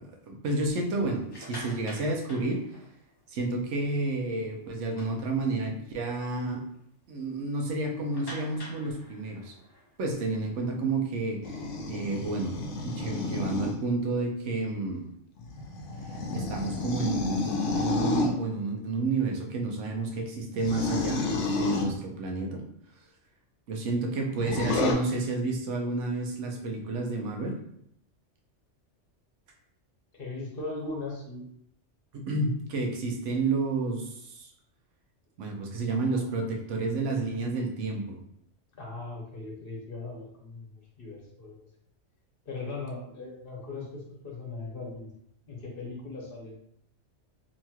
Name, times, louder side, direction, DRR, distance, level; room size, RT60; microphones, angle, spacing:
voice 1, 0.0-2.6 3.3-6.6 7.1-9.6 10.0-15.0 16.1-22.6 23.7-27.6 32.1-34.5 35.4-38.2, right 3 dB, 80° right, 1 dB, 1.0 m, -30 dB
sound 1, 1.1-3.3 3.7-3.9 4.3-4.4 4.8-5.8 6.3-6.4 6.7-6.8 8.1-11.5, left 1 dB, 35° left, 0.4 m, -47 dB
sound 2, 11.4-13.8 15.4-18.3 20.5-21.9 24.3-24.9, left 3 dB, 85° left, 0.9 m, -30 dB
voice 2, 30.1-31.5 36.1-36.5 38.8-41.7 42.5-45.1 45.5-46.6, left 3 dB, 55° left, -2 dB, 0.9 m, -39 dB
2.9 x 2.8 x 2.2 m, 0.71 s
omnidirectional pair, 1.2 m